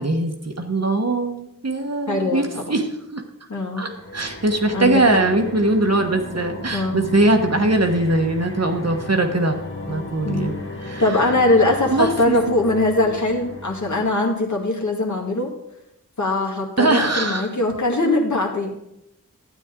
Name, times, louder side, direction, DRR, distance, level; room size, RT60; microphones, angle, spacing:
voice 1, 0.0-3.2 3.8-9.6 9.9-10.5 10.8-11.0 11.9-12.4 16.8-17.5, right 2 dB, 50° right, 5 dB, 1.2 m, -21 dB
voice 2, 2.1-2.8 3.5-3.9 4.7-5.2 6.7-7.0 10.2-10.6 11.0-15.6 16.2-18.8, left 2 dB, 55° left, 0 dB, 1.9 m, -21 dB
sound 1, 3.9-14.4, left 2 dB, 35° left, 1.3 m, -35 dB
12.5 x 8.9 x 3.7 m, 0.85 s
wide cardioid pair, 65°, 34 cm